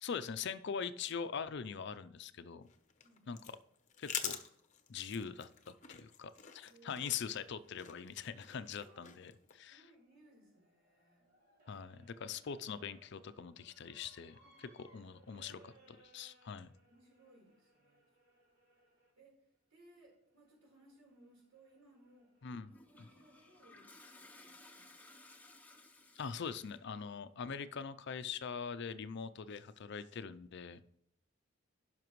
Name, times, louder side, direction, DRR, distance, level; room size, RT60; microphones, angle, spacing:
voice 1, 0.0-2.7 3.3-3.6 4.0-4.4 4.9-9.3 9.6-9.8 11.7-15.6 16.1-16.7 22.4-22.7 26.2-30.8, left 6 dB, 55° left, 13 dB, 0.5 m, -42 dB
sound 1, 2.6-9.5, left 8 dB, 35° left, 0.8 m, -47 dB
voice 2, 3.0-3.4 6.7-7.3 8.8-9.1 9.7-11.3 12.0-12.5 14.4-14.5 15.3-15.8 16.8-18.1 19.2-22.3 22.9-25.0, right 1 dB, 80° right, -1 dB, 4.0 m, -65 dB
sound 2, 9.3-19.1 19.9-23.6, right 2 dB, 45° right, 2.6 m, -69 dB
Toilet flush, 22.7-27.0, left 2 dB, 5° left, 0.8 m, -59 dB
16.0 x 5.8 x 3.1 m, 0.74 s
head